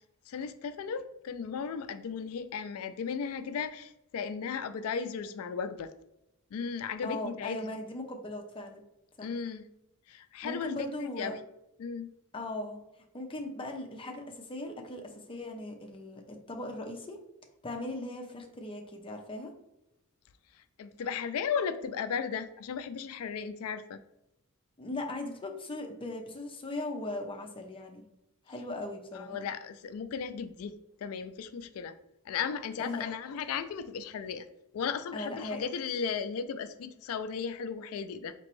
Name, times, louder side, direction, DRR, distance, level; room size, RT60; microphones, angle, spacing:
voice 1, 0.3-5.9 6.5-7.6 9.2-9.6 10.1-11.4 11.8-12.1 20.8-24.0 29.1-30.7 31.0-32.0 32.3-34.5 34.7-38.3, left 6 dB, 70° left, 11 dB, 0.3 m, -35 dB
voice 2, 7.0-8.8 9.2-9.3 10.4-11.3 12.3-12.8 13.1-17.2 17.6-19.5 24.8-28.0 28.5-29.4 32.8-33.0 35.1-35.6, left 2 dB, 25° left, 2 dB, 0.6 m, -38 dB
4.3 x 2.9 x 3.0 m, 0.86 s
head